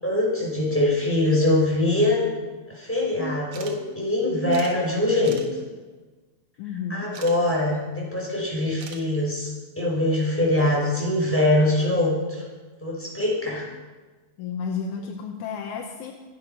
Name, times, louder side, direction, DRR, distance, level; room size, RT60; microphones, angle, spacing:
voice 1, 0.0-2.3 2.7-5.4 6.9-9.5 9.8-12.4 12.8-13.6, left 1 dB, 5° left, -4 dB, 5.4 m, -23 dB
sound 1, 3.5-3.8 4.1-4.2 4.5-4.8 5.2-5.5 7.1-7.4 8.8-9.0, right 6 dB, 75° right, 2.7 m, -41 dB
voice 2, 6.6-7.1 14.4-16.1, left 6 dB, 85° left, 2 dB, 2.5 m, -32 dB
26.0 x 8.8 x 5.7 m, 1.3 s
omnidirectional pair, 3.4 m